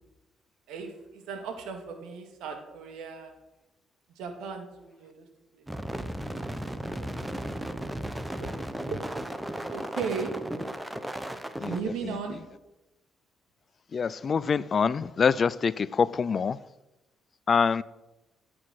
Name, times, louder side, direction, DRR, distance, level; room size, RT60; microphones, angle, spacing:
voice 1, 0.7-3.3 4.2-5.3 5.5-5.6 6.8-7.1 8.4-8.5 8.9-9.0 9.7-10.3 11.6-12.4, right 5 dB, 90° right, 2.3 m, -37 dB
sound 1, 5.7-11.8, right 1 dB, 10° right, 1.1 m, -35 dB
voice 2, 11.6-12.2 13.9-16.6 17.5-17.8, left 6 dB, 45° left, 0.5 m, -25 dB
13.5 x 7.9 x 6.4 m
cardioid pair, 90°, 0 cm